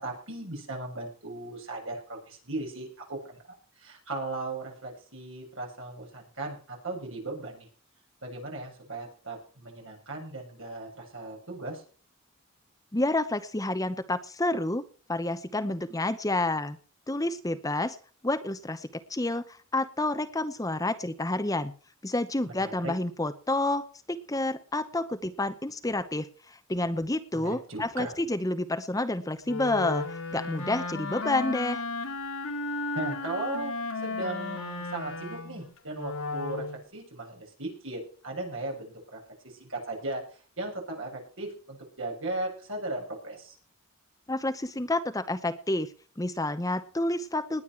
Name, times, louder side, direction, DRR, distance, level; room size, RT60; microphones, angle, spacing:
voice 1, 0.0-3.4 3.8-7.7 8.2-11.8 22.4-22.9 27.3-28.1 32.9-33.7 34.0-43.6, right 2 dB, 65° right, 0 dB, 7.4 m, -37 dB
voice 2, 12.9-14.8 15.1-16.8 17.1-18.0 18.2-21.7 22.0-31.8 44.3-45.9 46.2-47.6, left 2 dB, 15° left, 10 dB, 0.8 m, -29 dB
Wind instrument woodwind instrument, 29.4-36.8, left 3 dB, 85° left, 2.6 m, -34 dB
20.0 x 9.2 x 4.6 m, 0.40 s
head